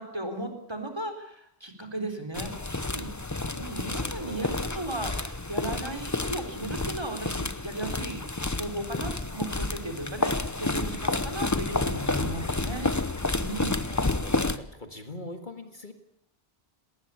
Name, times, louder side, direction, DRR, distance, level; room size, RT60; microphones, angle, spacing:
voice 1, 0.0-2.5 2.8-3.1 3.5-8.2 8.5-12.9 13.4-13.8, right 1 dB, 25° right, 5 dB, 4.1 m, -36 dB
sound 1, 2.3-14.6, left 2 dB, 20° left, 0.8 m, -30 dB
voice 2, 3.5-4.6 13.8-15.9, left 1 dB, 50° left, 6 dB, 2.1 m, -43 dB
19.5 x 19.5 x 8.4 m, 0.74 s
omnidirectional pair, 1.1 m